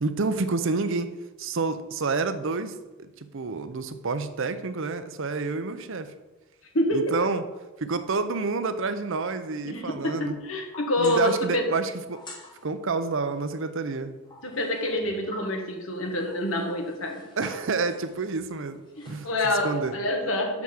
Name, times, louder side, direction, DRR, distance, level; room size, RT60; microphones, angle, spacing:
voice 1, 0.0-1.1 1.4-6.1 6.9-7.4 7.8-10.4 11.0-12.2 12.6-14.2 17.4-20.0, right 4 dB, 65° right, 10 dB, 0.7 m, -29 dB
voice 2, 6.7-7.2 9.6-11.7 14.4-17.2 19.0-20.6, left 1 dB, 75° left, 3 dB, 1.7 m, -27 dB
sound 1, 10.4-11.6 12.1-12.7 14.2-15.7 16.1-18.6 18.9-19.8, left 2 dB, 20° left, 1.6 m, -46 dB
6.2 x 6.0 x 7.2 m, 1.1 s
head